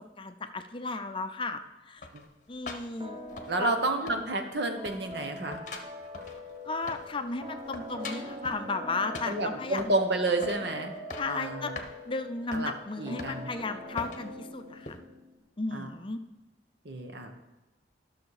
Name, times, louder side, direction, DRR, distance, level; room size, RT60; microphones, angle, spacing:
voice 1, 0.2-1.6 1.9-2.0 2.5-3.2 3.6-3.8 6.7-9.8 11.1-11.7 12.1-15.0 15.6-16.2, left 3 dB, 30° left, 8 dB, 0.5 m, -34 dB
sound 1, 2.0-3.8 4.1-4.6 4.8-7.2 7.5-8.6 9.1-10.0 10.4-10.7 10.9-11.4 11.8-11.9 12.5-12.7 13.2-13.6 14.0-14.3 14.8-15.0, left 3 dB, 45° left, 0.9 m, -43 dB
sound 2, 3.0-15.4, left 1 dB, 25° right, 1.0 m, -44 dB
voice 2, 3.5-5.6 9.3-10.9 11.2-11.8 12.5-13.5 15.7-15.9 16.8-17.3, right 2 dB, 65° right, 5 dB, 1.1 m, -30 dB
12.0 x 6.4 x 4.8 m, 1.1 s
head